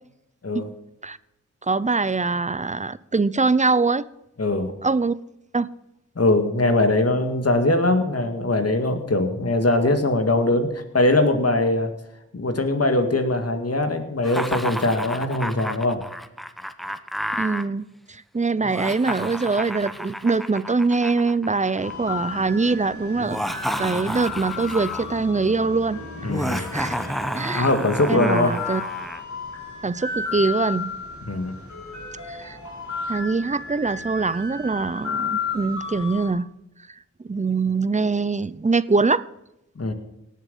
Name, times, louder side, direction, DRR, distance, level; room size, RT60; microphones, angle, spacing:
voice 1, 1.6-4.1 4.8-5.1 5.5-5.7 17.4-23.4 23.8-26.9 27.3-27.7 28.1-28.8 29.8-30.9 32.3-32.6 33.1-36.5 37.2-39.3, right 3 dB, 25° right, 0.6 m, -23 dB
voice 2, 4.4-4.7 6.2-11.9 12.3-16.0 26.2-26.7 27.6-28.6 31.2-31.5 39.8-39.9, left 2 dB, 55° left, 2.0 m, -21 dB
Laughter, 14.2-17.6 18.6-21.9 23.2-25.2 26.3-29.2, equal, ahead, 0.9 m, -31 dB
sound 1, 21.8-36.3, left 4 dB, 75° left, 4.2 m, -34 dB
18.0 x 7.5 x 5.5 m
cardioid pair, 45°, 29 cm